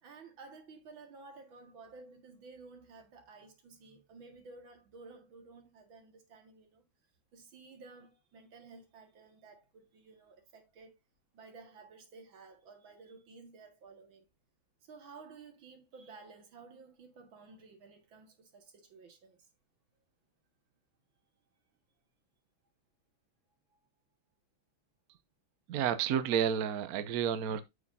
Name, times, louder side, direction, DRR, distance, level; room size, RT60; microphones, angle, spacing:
voice 1, 0.0-6.8 7.3-11.0 11.3-14.3 14.8-19.5 23.7-23.8, right 4 dB, 75° right, 2.6 m, -54 dB
voice 2, 25.7-27.6, right 8 dB, 60° right, 1.0 m, -30 dB
8.2 x 7.5 x 2.7 m
omnidirectional pair, 2.2 m